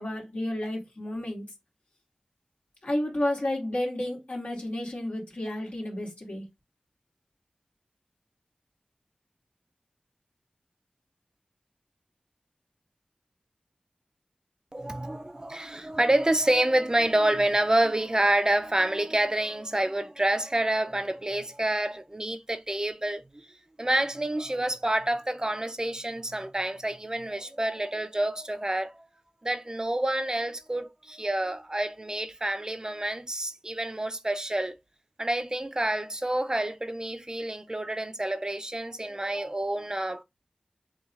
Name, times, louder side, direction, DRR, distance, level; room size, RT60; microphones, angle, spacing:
voice 1, 0.0-1.4 2.8-6.4, left 1 dB, 75° left, 2.1 m, -31 dB
voice 2, 14.7-23.2 23.8-28.9 29.4-34.7 35.2-40.2, right 1 dB, 30° right, 0.5 m, -28 dB
6.9 x 2.4 x 2.4 m
wide cardioid pair, 50°, 2 cm